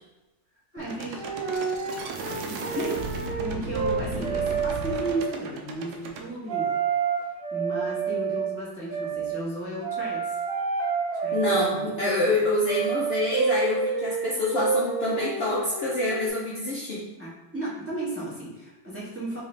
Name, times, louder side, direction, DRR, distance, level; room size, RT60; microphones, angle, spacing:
voice 1, 0.7-1.2 2.4-2.9 3.4-6.8 7.5-10.4 11.2-11.4 11.7-11.8 17.2-19.4, right 1 dB, 10° right, -8 dB, 1.2 m, -34 dB
sound 1, 0.8-0.9 1.1-3.5 3.7-5.3 6.5-8.5 8.9-9.3 9.8-11.9 12.6-16.3, right 5 dB, 45° right, 0.8 m, -29 dB
sound 2, 0.8-6.3, right 3 dB, 70° right, 1.1 m, -35 dB
voice 2, 11.3-17.0, left 2 dB, 75° left, -5 dB, 0.5 m, -26 dB
4.7 x 3.4 x 3.3 m, 1.0 s
omnidirectional pair, 2.0 m